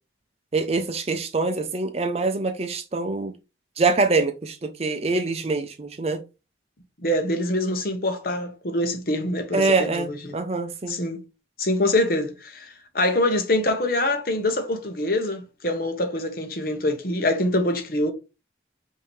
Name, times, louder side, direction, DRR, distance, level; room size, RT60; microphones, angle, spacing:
voice 1, 0.5-3.3 3.8-6.2 9.5-11.0, right 3 dB, 35° right, 0.5 m, -24 dB
voice 2, 7.0-10.4 10.9-11.2 11.6-18.1, left 1 dB, 50° left, 0.9 m, -25 dB
5.6 x 2.8 x 3.1 m
head